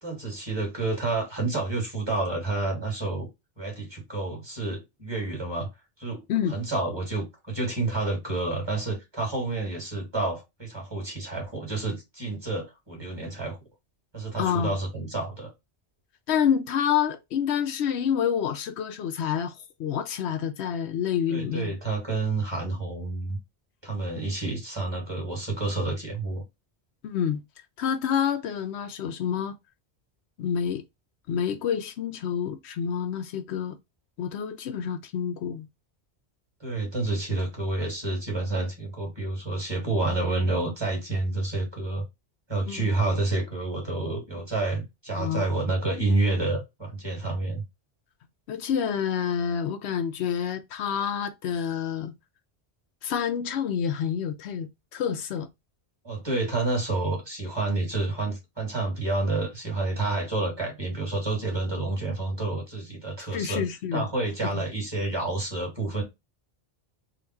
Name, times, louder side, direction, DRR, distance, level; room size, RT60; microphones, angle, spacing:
voice 1, 0.0-3.3 3.6-5.7 6.0-6.2 6.5-13.6 14.1-15.5 21.3-23.4 23.8-26.4 36.6-42.0 42.5-47.6 56.0-63.6 63.9-66.0, right 2 dB, 25° right, 2.1 m, -29 dB
voice 2, 14.4-14.8 16.3-21.8 27.0-27.4 27.8-29.5 30.4-30.8 31.3-33.8 34.2-35.7 42.7-42.9 45.2-45.4 48.5-52.1 53.0-55.5 63.3-64.1 64.5-64.6, left 8 dB, 90° left, 0.9 m, -28 dB
3.9 x 2.4 x 4.4 m
omnidirectional pair, 1.1 m